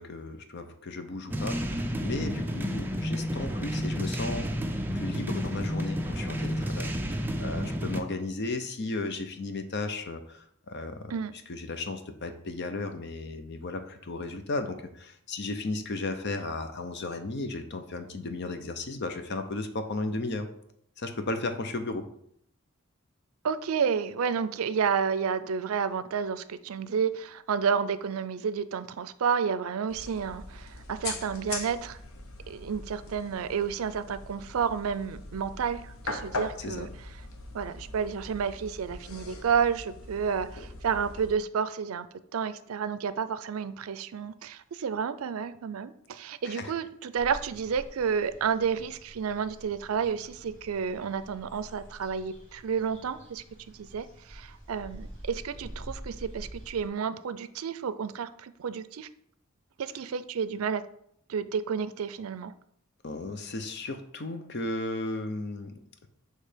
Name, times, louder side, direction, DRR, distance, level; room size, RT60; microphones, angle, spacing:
voice 1, 0.0-4.5 4.9-7.1 7.4-11.2 11.5-20.5 21.0-22.1 36.6-36.9 46.5-46.7 63.0-66.1, left 2 dB, 55° left, 8 dB, 0.7 m, -35 dB
sound 1, 1.3-8.0, equal, 10° right, 0.5 m, -31 dB
voice 2, 23.4-32.0 32.5-36.9 37.5-42.1 42.3-53.4 53.8-59.1 59.8-60.8 61.3-62.5, right 6 dB, 85° right, 13 dB, 0.4 m, -30 dB
sound 2, 29.9-41.3, left 2 dB, 80° left, 0.9 m, -41 dB
sound 3, 47.2-56.9, equal, 35° left, 2.2 m, -47 dB
6.5 x 3.3 x 5.0 m, 0.70 s
head